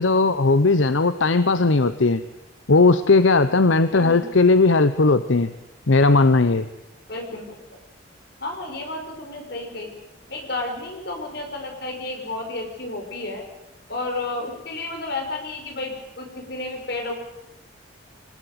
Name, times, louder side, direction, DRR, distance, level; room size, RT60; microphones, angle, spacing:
voice 1, 0.0-2.2 2.7-5.5 5.9-6.7, left 3 dB, 80° left, 12 dB, 0.9 m, -17 dB
voice 2, 3.9-4.4 7.1-7.8 8.4-9.9 10.3-13.4 13.9-17.1, left 2 dB, 55° left, 3 dB, 5.2 m, -32 dB
24.5 x 19.5 x 7.9 m, 0.94 s
head